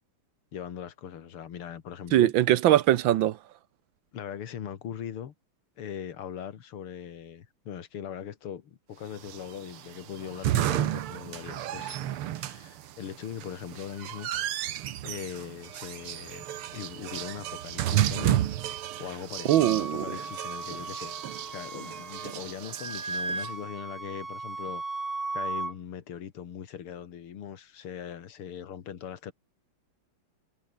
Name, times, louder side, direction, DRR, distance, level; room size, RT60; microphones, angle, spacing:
voice 1, 0.5-2.3 4.1-5.3 5.8-12.0 12.4-14.3 15.0-16.4 16.7-18.5 19.0-21.2 21.5-24.8 25.3-29.3, left 9 dB, 90° left, 2.5 m, -40 dB
voice 2, 2.1-3.4 19.5-20.0, right 13 dB, 70° right, 1.4 m, -21 dB
sound 1, 9.2-23.5, right 12 dB, 90° right, 2.0 m, -32 dB
Wind instrument woodwind instrument, 19.5-22.4 22.7-25.7, right 3 dB, 25° right, 2.6 m, -36 dB
omnidirectional pair, 2.4 m